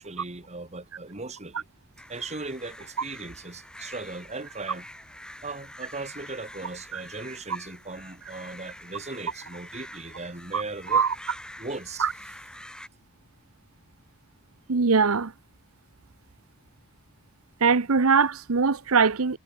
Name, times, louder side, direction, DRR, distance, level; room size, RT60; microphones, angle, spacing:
voice 1, 0.0-1.6 2.1-4.9 5.4-11.0 11.6-12.1, right 3 dB, 30° right, 2.8 m, -38 dB
sound 1, 2.0-12.9, left 1 dB, 5° left, 4.4 m, -46 dB
voice 2, 14.7-15.3 17.6-19.4, right 5 dB, 85° right, 0.9 m, -21 dB
head